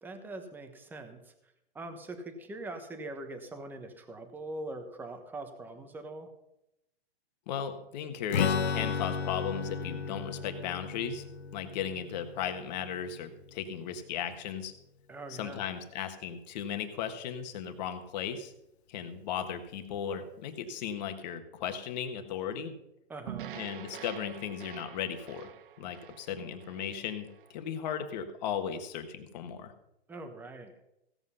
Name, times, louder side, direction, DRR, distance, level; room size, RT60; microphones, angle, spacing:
voice 1, 0.0-1.3 1.7-6.3 15.1-15.6 23.1-23.5 30.1-30.7, right 2 dB, 5° right, 6 dB, 1.0 m, -42 dB
voice 2, 7.5-11.2 11.5-14.7 15.3-18.5 18.9-22.8 23.5-25.5 25.8-29.7, left 8 dB, 40° left, 8 dB, 1.6 m, -36 dB
Strum, 8.3-13.9, left 6 dB, 85° left, 1.2 m, -34 dB
sound 1, 23.3-27.6, right 11 dB, 55° right, 0.7 m, -46 dB
16.0 x 7.9 x 5.6 m, 0.84 s
hypercardioid pair, 155°, 32 cm